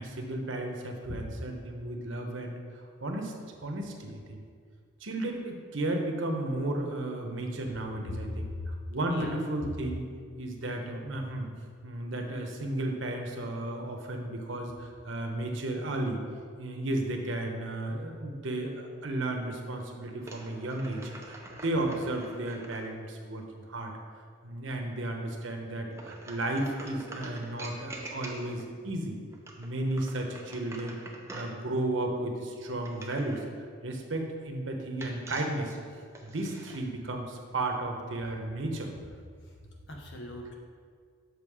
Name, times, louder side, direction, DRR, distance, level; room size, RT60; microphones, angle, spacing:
voice 1, 0.0-2.6 3.0-3.3 3.6-4.4 5.0-10.1 10.4-11.5 11.8-16.2 16.6-23.9 24.4-29.2 29.6-31.0 31.3-33.4 33.8-35.7 36.2-38.9, right 1 dB, 70° right, 2 dB, 1.0 m, -33 dB
voice 2, 8.1-8.7 9.1-9.4 39.4-39.5 39.9-40.6, left 2 dB, 60° left, 0 dB, 1.1 m, -39 dB
sound 1, 20.2-22.9 25.9-28.7 29.3-31.6 32.8-33.5 35.0-36.8, right 2 dB, 15° right, 0.7 m, -46 dB
6.4 x 5.4 x 4.8 m, 2.1 s
head